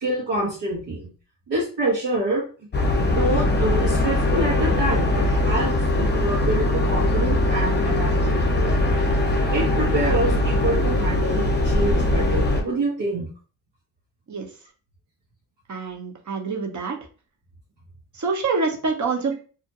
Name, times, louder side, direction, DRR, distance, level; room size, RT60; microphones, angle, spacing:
voice 1, 0.0-1.1 1.5-2.4 3.1-8.7 9.5-13.3, right 1 dB, 70° right, -5 dB, 1.0 m, -26 dB
sound 1, 2.7-12.6, left 1 dB, 25° left, 0.7 m, -21 dB
voice 2, 15.7-17.1 18.1-19.3, right 4 dB, 40° right, 2 dB, 0.8 m, -26 dB
2.4 x 2.1 x 2.8 m, 0.37 s
supercardioid pair, 50°, 43 cm